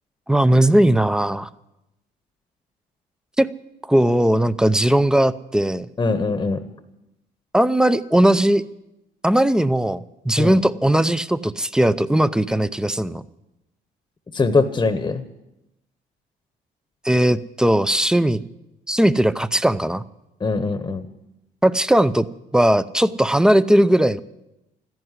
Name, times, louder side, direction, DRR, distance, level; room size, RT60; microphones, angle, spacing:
voice 1, 0.3-1.5 3.4-3.5 3.9-5.9 7.5-8.6 9.2-13.2 17.0-18.4 18.9-20.0 21.6-22.3 22.5-24.2, right 1 dB, 5° right, 15 dB, 0.5 m, -18 dB
voice 2, 6.0-6.6 10.4-10.6 14.3-15.2 20.4-21.0, left 3 dB, 20° left, 10 dB, 1.0 m, -21 dB
13.5 x 10.5 x 9.7 m, 0.91 s
cardioid pair, 110°, 17 cm